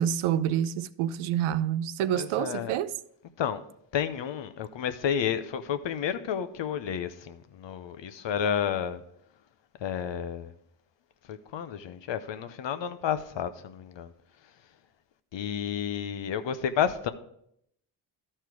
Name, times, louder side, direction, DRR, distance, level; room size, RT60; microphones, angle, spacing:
voice 1, 0.0-2.9, right 10 dB, 80° right, 0.5 m, -27 dB
voice 2, 2.1-2.7 3.4-3.6 3.9-9.0 9.8-10.5 11.3-14.1 15.3-17.1, left 8 dB, 65° left, 0.8 m, -31 dB
12.0 x 4.4 x 4.8 m
supercardioid pair, 45°, 48 cm